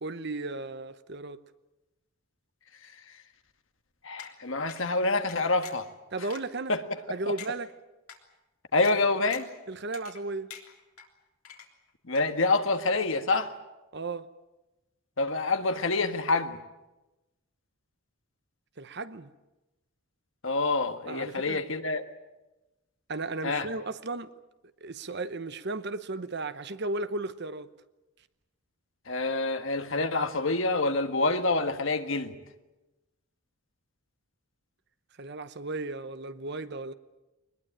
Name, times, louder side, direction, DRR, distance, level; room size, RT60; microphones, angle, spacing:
voice 1, 0.0-1.4 6.1-6.7 7.1-7.7 9.7-10.5 13.9-14.3 18.8-19.3 21.1-21.6 23.1-24.3 24.8-27.7 35.2-36.9, right 2 dB, 50° right, 0.9 m, -35 dB
voice 2, 4.0-5.8 6.7-6.8 8.7-9.5 12.1-13.5 15.2-16.6 20.4-22.0 23.4-23.7 29.1-32.3, left 3 dB, 65° left, 1.6 m, -27 dB
sound 1, 4.2-4.3 4.7-4.8 5.3-5.9 6.3-6.4 6.9-7.0 7.4-7.5 8.1-8.2 8.8-9.0 9.3-9.6 9.9-10.2 10.5-11.1 11.4-11.9 12.1-12.2, left 8 dB, 85° left, 3.4 m, -45 dB
22.5 x 20.5 x 8.9 m
head